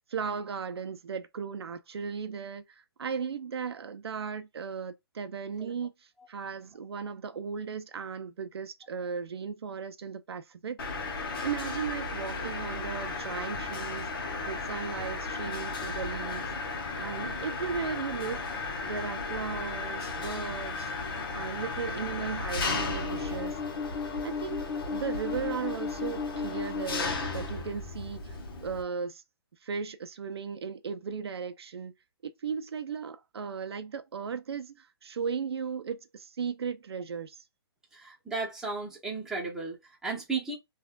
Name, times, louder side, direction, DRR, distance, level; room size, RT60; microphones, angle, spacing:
voice 1, 0.1-2.6 3.0-5.9 6.3-10.8 11.4-20.9 21.3-23.6 24.2-29.2 29.6-31.9 32.2-37.4, right 6 dB, 80° right, 0.5 m, -36 dB
Mechanisms, 10.8-28.8, left 4 dB, 60° left, 0.9 m, -34 dB
voice 2, 37.9-40.6, right 4 dB, 5° right, 1.0 m, -34 dB
3.4 x 2.4 x 2.3 m
hypercardioid pair, 140°, 13 cm